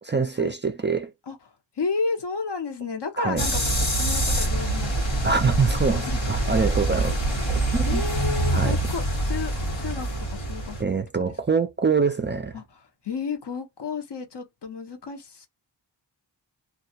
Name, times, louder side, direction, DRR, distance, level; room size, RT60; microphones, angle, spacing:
voice 1, 0.0-1.1 3.2-3.4 5.2-7.2 7.5-8.0 8.5-8.8 10.8-12.5, right 5 dB, 25° right, 0.3 m, -24 dB
voice 2, 1.8-6.2 7.9-10.8 11.3-11.4 12.5-15.5, left 4 dB, 65° left, 0.8 m, -32 dB
sound 1, 3.4-10.8, right 1 dB, 85° left, 1.2 m, -25 dB
2.3 x 2.1 x 2.7 m
wide cardioid pair, 45°, 45 cm